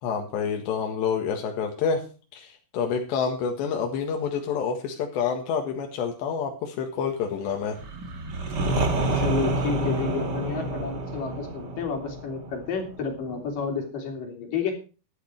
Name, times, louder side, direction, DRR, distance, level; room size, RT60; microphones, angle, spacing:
voice 1, 0.0-2.0 2.3-7.8, left 6 dB, 85° left, 2 dB, 4.0 m, -28 dB
sound 1, 7.8-13.5, right 2 dB, 45° right, 1.3 m, -29 dB
voice 2, 9.1-14.7, left 5 dB, 55° left, 3 dB, 4.6 m, -30 dB
12.5 x 11.5 x 4.7 m, 0.35 s
omnidirectional pair, 4.9 m